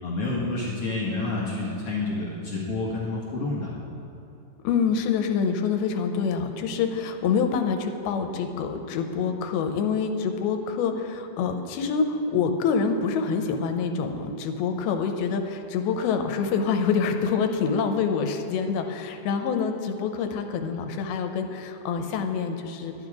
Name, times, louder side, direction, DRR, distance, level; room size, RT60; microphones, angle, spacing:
voice 1, 0.0-3.7, left 2 dB, 50° left, -6 dB, 1.8 m, -29 dB
voice 2, 4.6-22.9, left 5 dB, 90° left, 6 dB, 2.7 m, -26 dB
11.0 x 10.5 x 4.8 m, 2.9 s
omnidirectional pair, 4.3 m